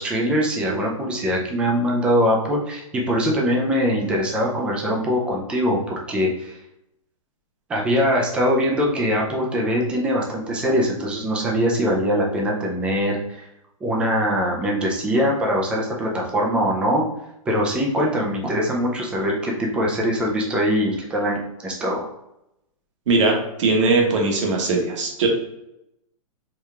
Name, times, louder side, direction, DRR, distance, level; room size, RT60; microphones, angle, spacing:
voice 1, 0.0-6.6 7.7-13.5 13.8-17.1 17.5-22.1, equal, 5° right, -1 dB, 0.3 m, -22 dB
voice 2, 23.1-25.3, right 3 dB, 55° right, 1 dB, 1.1 m, -20 dB
4.6 x 2.3 x 3.3 m, 0.85 s
hypercardioid pair, 160°, 19 cm